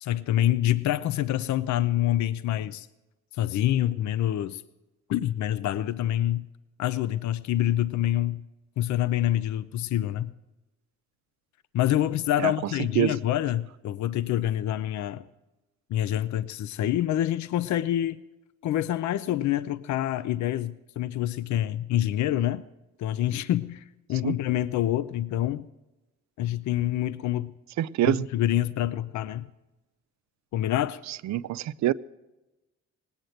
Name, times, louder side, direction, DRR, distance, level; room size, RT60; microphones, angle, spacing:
voice 1, 0.0-2.9 3.4-4.6 5.1-6.5 6.8-8.4 8.8-10.3 11.7-15.2 15.9-18.2 18.6-22.6 23.0-25.7 26.4-27.5 28.1-29.5 30.5-31.0, left 12 dB, 70° left, 0.6 m, -26 dB
voice 2, 27.8-28.3 31.1-31.9, right 13 dB, 65° right, 0.5 m, -25 dB
18.5 x 8.9 x 7.8 m
cardioid pair, 90°, 30 cm